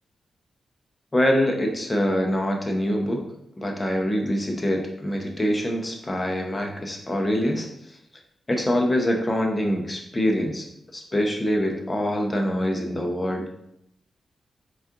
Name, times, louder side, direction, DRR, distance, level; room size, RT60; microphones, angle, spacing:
voice 1, 1.1-3.2 3.6-8.0 8.5-10.7 10.9-13.5, equal, 20° left, 1 dB, 0.7 m, -24 dB
4.2 x 2.4 x 3.6 m, 0.77 s
wide cardioid pair, 105°, 0 cm